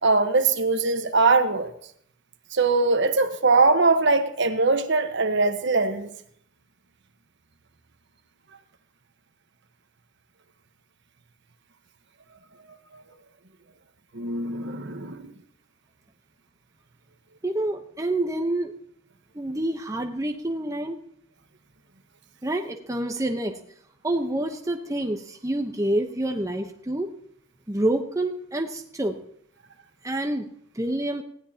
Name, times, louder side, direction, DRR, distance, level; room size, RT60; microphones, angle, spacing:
voice 1, 0.0-1.7 2.5-6.1 12.9-13.0 14.1-15.3, right 3 dB, 55° right, 1.2 m, -21 dB
voice 2, 17.4-18.7 19.3-21.0 22.4-23.5 24.0-27.1 27.7-29.1 30.0-30.5 30.7-31.2, right 1 dB, 15° right, 0.9 m, -27 dB
19.5 x 15.5 x 2.9 m
head